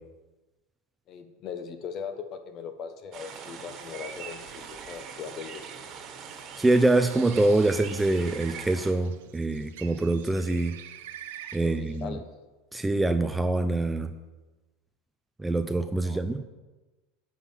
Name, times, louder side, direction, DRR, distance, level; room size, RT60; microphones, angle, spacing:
voice 1, 1.1-5.6 11.6-12.2 16.0-16.2, left 7 dB, 40° left, 8 dB, 1.2 m, -39 dB
sound 1, 3.1-8.9, right 7 dB, 40° right, 1.6 m, -42 dB
voice 2, 6.6-10.8 11.5-12.2 12.7-14.1 15.4-16.4, right 2 dB, 10° right, 9 dB, 0.5 m, -25 dB
Bird, 6.6-12.1, right 11 dB, 85° right, 0.8 m, -47 dB
9.7 x 5.7 x 7.4 m, 1.2 s
supercardioid pair, 140°, 0 cm